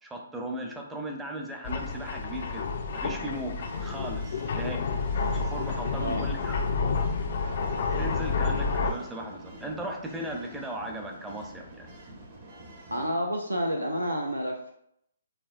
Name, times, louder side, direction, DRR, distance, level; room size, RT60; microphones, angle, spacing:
voice 1, 0.0-2.7 2.9-4.8 5.3-6.5 7.7-11.9, right 1 dB, 5° right, 1 dB, 0.6 m, -37 dB
sound 1, 1.6-8.9, left 4 dB, 45° left, 0.4 m, -29 dB
sound 2, 3.2-13.1, right 1 dB, 40° right, 0.8 m, -46 dB
voice 2, 12.9-14.7, equal, 80° right, 2 dB, 0.5 m, -29 dB
5.7 x 2.1 x 2.6 m, 0.73 s
figure-of-eight pair, 130°, 0 cm